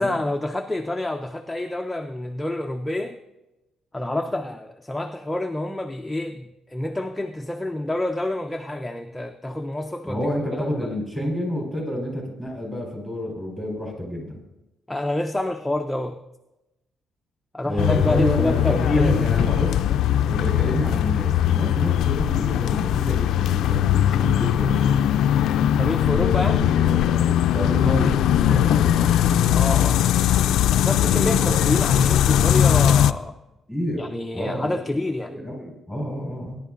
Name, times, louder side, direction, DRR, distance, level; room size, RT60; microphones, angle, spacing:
voice 1, 0.0-3.2 3.9-11.0 14.9-16.2 17.5-19.3 25.7-26.6 29.5-30.1 30.7-33.4 34.0-35.3, left 1 dB, 10° left, 5 dB, 0.4 m, -28 dB
voice 2, 10.0-14.4 17.6-18.7 18.9-19.7 20.3-25.0 26.1-29.2 31.0-31.6 33.7-34.8 35.3-36.6, equal, 10° right, -2 dB, 3.9 m, -29 dB
sound 1, 17.8-33.1, left 10 dB, 85° left, 0.3 m, -20 dB
19.5 x 10.5 x 2.5 m, 0.97 s
cardioid pair, 140°, 0 cm